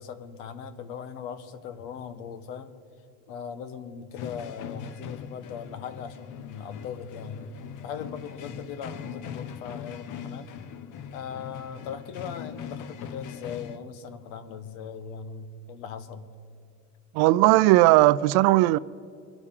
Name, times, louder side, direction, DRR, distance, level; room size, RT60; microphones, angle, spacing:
voice 1, 0.0-2.7 3.3-7.4 7.8-10.5 11.1-16.3, left 7 dB, 85° left, 1.3 m, -39 dB
sound 1, 4.1-13.8, left 8 dB, 45° left, 0.9 m, -40 dB
voice 2, 17.1-18.8, right 18 dB, 65° right, 0.5 m, -18 dB
23.0 x 11.0 x 3.8 m
supercardioid pair, 130°, 42 cm